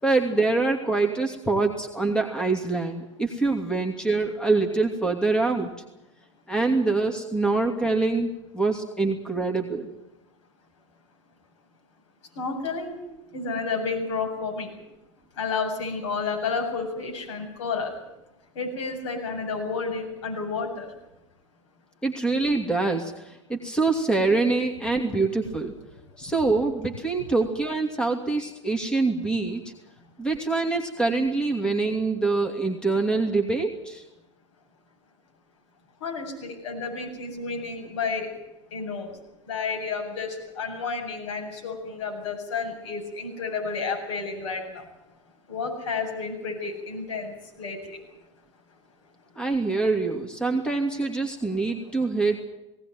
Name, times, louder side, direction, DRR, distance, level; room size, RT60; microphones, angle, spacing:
voice 1, 0.0-5.7 6.5-9.9 22.0-25.7 26.2-29.6 30.2-34.0 49.3-52.4, right 3 dB, 5° left, 4 dB, 2.7 m, -25 dB
voice 2, 12.4-13.0 13.3-14.7 15.4-17.9 18.5-20.9 36.0-38.3 38.7-39.2 39.5-44.9 45.5-48.0, left 4 dB, 65° left, 1 dB, 7.6 m, -31 dB
19.0 x 18.0 x 9.4 m, 0.94 s
hypercardioid pair, 90°, 16 cm